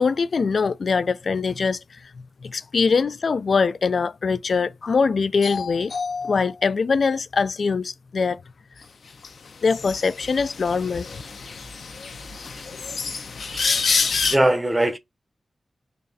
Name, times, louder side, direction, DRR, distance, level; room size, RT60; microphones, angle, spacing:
voice 1, 0.0-2.1 2.4-8.4 9.6-11.1, left 5 dB, 65° left, 0.3 m, -23 dB
sound 1, 9.2-9.3 9.7-14.4, left 5 dB, 85° left, 0.7 m, -27 dB
voice 2, 13.5-15.0, right 1 dB, 20° right, 0.8 m, -23 dB
3.9 x 3.2 x 2.7 m
cardioid pair, 65°, 0 cm